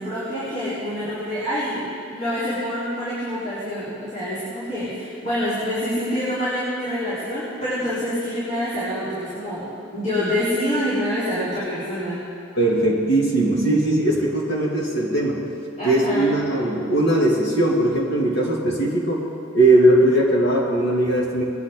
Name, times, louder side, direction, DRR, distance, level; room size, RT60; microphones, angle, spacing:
voice 1, 0.0-12.2 15.8-16.4, equal, 35° left, -12 dB, 4.0 m, -26 dB
voice 2, 12.6-15.4 15.8-19.3 19.5-21.4, right 1 dB, 60° left, -3 dB, 2.7 m, -19 dB
21.0 x 10.5 x 3.9 m, 2.4 s
head